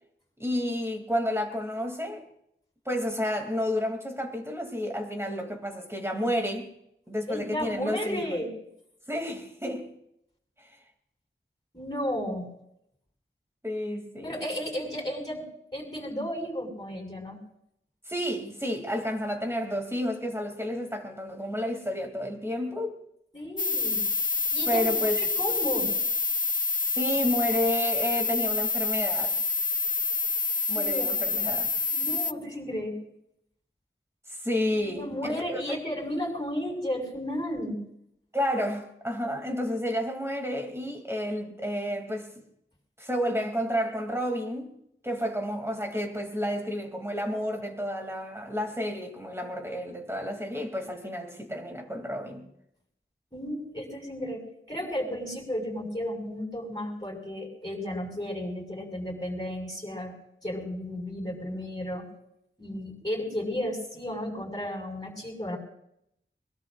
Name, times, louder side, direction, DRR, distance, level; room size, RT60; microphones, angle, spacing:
voice 1, 0.4-2.2 2.8-6.7 7.1-8.4 9.1-9.9 10.6-10.7 13.6-14.4 18.1-22.9 23.9-24.0 24.7-25.2 26.8-29.4 30.7-31.7 34.3-35.6 38.3-42.3 43.0-44.7 45.0-52.5, equal, 10° right, 2.9 m, -31 dB
voice 2, 7.3-8.5 11.7-12.5 14.2-17.4 23.3-24.0 24.5-25.9 30.7-31.4 31.9-33.0 34.7-37.8 53.3-60.1 60.4-62.1 62.6-65.6, equal, 20° left, 6.1 m, -33 dB
sound 1, 23.6-32.3, left 4 dB, 40° left, 0.5 m, -27 dB
22.5 x 21.5 x 2.6 m
wide cardioid pair, 40°, 21 cm